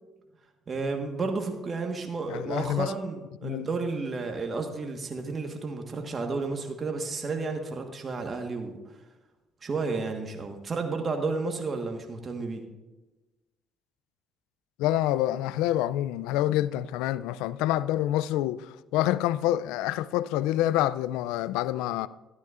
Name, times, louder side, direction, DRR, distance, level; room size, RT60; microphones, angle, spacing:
voice 1, 0.7-8.8 9.6-12.6, right 3 dB, 35° right, 1.4 m, -32 dB
voice 2, 2.3-2.9 3.4-3.7 14.8-22.1, left 13 dB, 85° left, 0.3 m, -27 dB
13.5 x 12.0 x 2.5 m
supercardioid pair, 80°, 0 cm